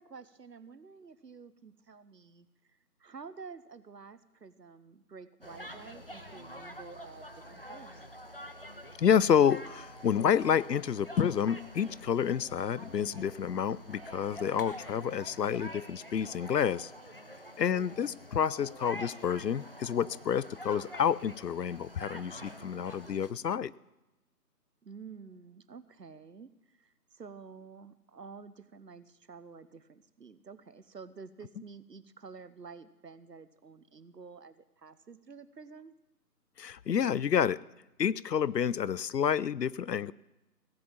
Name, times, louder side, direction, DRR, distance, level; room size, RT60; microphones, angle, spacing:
voice 1, 0.0-2.5 3.0-8.0 17.7-18.0 24.8-35.9, right 5 dB, 75° right, 14 dB, 1.0 m, -50 dB
sound 1, 5.4-23.3, equal, 35° left, 0.6 m, -47 dB
voice 2, 9.0-16.9 17.6-23.7 36.6-37.6 38.0-40.1, left 8 dB, 75° left, 21 dB, 0.6 m, -29 dB
sound 2, 9.0-21.1, right 2 dB, 35° right, 0.7 m, -57 dB
16.5 x 8.0 x 7.2 m, 0.98 s
figure-of-eight pair, 160°, 50 cm